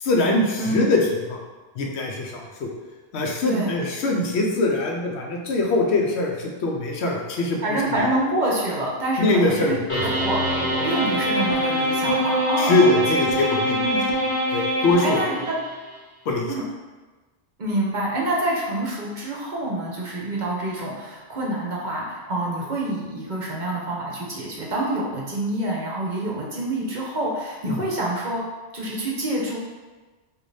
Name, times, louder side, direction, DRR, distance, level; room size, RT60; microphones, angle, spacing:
voice 1, 0.0-1.0 1.3-1.4 1.8-2.7 3.1-7.6 9.2-10.0 12.6-13.9 14.5-15.2 16.3-16.5 27.7-27.8, left 2 dB, 80° left, 0 dB, 0.9 m, -22 dB
voice 2, 3.5-3.8 7.6-10.4 10.8-13.0 13.8-14.0 15.0-15.5 16.5-16.6 17.6-28.4 28.7-29.6, right 1 dB, 50° right, -3 dB, 0.7 m, -27 dB
sound 1, 9.9-15.7, equal, 30° left, 0.9 m, -24 dB
4.8 x 2.6 x 2.6 m, 1.3 s
omnidirectional pair, 1.1 m